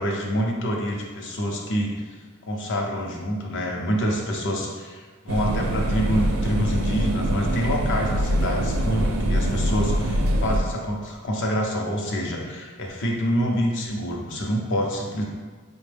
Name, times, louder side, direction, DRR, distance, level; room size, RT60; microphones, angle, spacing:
voice 1, 0.0-1.9 2.4-15.2, equal, 60° left, 0 dB, 0.6 m, -26 dB
sound 1, 5.3-10.6, equal, 70° right, 0.4 m, -24 dB
5.1 x 2.1 x 3.3 m, 1.5 s
head